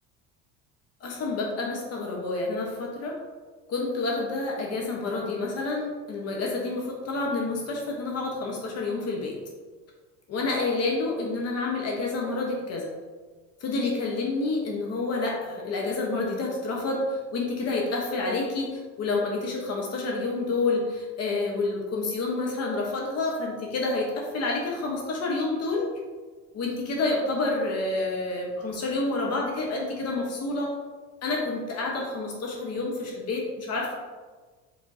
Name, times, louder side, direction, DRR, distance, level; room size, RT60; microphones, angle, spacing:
voice 1, 1.0-3.2 3.7-9.4 10.3-12.9 13.6-25.9 26.5-30.7 31.2-33.9, left 3 dB, 50° left, -1 dB, 1.0 m, -29 dB
5.4 x 3.6 x 2.7 m, 1.4 s
supercardioid pair, 100°, 34 cm